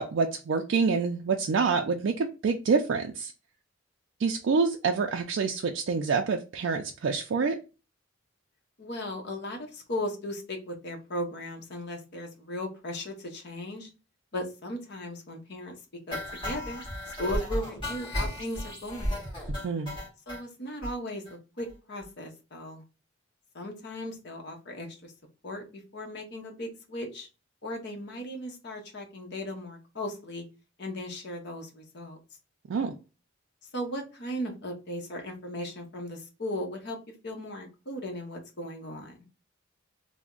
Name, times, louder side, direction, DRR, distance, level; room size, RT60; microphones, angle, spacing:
voice 1, 0.0-3.3 4.2-7.6 19.6-20.0 32.7-32.9, right 5 dB, 65° right, 3 dB, 0.3 m, -27 dB
voice 2, 8.8-13.9 14.3-15.8 16.1-16.8 17.2-19.2 20.3-22.8 23.5-25.1 25.4-27.3 27.6-30.4 30.8-32.2 33.7-39.1, left 1 dB, 55° left, 3 dB, 0.8 m, -37 dB
sound 1, 16.1-20.4 20.8-20.9 21.3-21.4 21.6-21.7 22.0-22.1, left 1 dB, 25° left, 2.0 m, -34 dB
3.3 x 2.1 x 3.7 m, 0.31 s
head